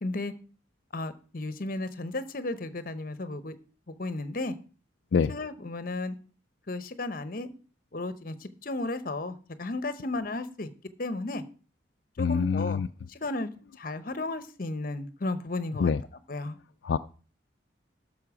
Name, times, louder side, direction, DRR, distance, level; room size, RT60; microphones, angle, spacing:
voice 1, 0.0-0.3 0.9-3.5 4.0-4.6 5.3-6.1 6.7-7.5 7.9-10.7 11.0-11.4 12.2-12.8 13.1-13.5 13.8-15.9 16.3-16.6, left 2 dB, 50° left, 12 dB, 0.9 m, -34 dB
voice 2, 12.2-12.9 15.8-16.0 16.8-17.0, left 5 dB, 75° left, 10 dB, 0.4 m, -25 dB
12.5 x 6.5 x 4.9 m, 0.38 s
head